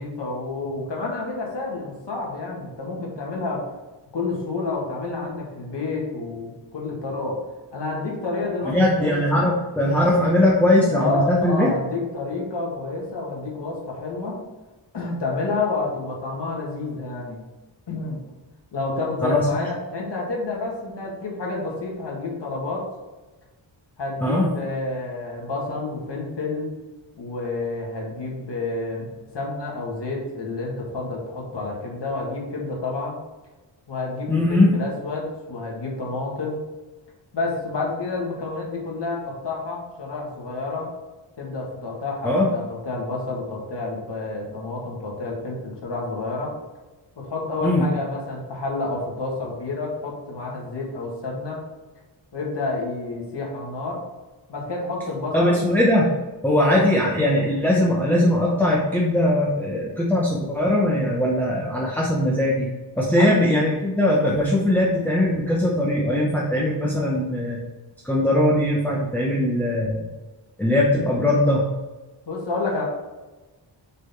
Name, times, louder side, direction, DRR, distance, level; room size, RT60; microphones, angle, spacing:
voice 1, 0.0-3.7 4.1-7.4 7.7-9.5 10.9-14.4 14.9-17.4 17.9-18.2 18.7-22.9 24.0-26.7 27.2-29.1 29.3-33.2 33.9-36.6 37.3-40.9 41.4-46.5 47.2-51.6 52.3-54.0 54.5-55.6 63.2-63.3 72.3-72.8, left 3 dB, 60° left, -2 dB, 1.9 m, -29 dB
voice 2, 8.6-11.7 19.2-19.5 24.2-24.5 34.3-34.7 42.2-42.5 47.6-47.8 55.3-56.1 56.4-62.7 63.0-67.6 68.0-70.1 70.6-71.6, left 1 dB, 5° left, -4 dB, 0.7 m, -20 dB
6.4 x 4.0 x 4.3 m, 1.2 s
wide cardioid pair, 160°, 46 cm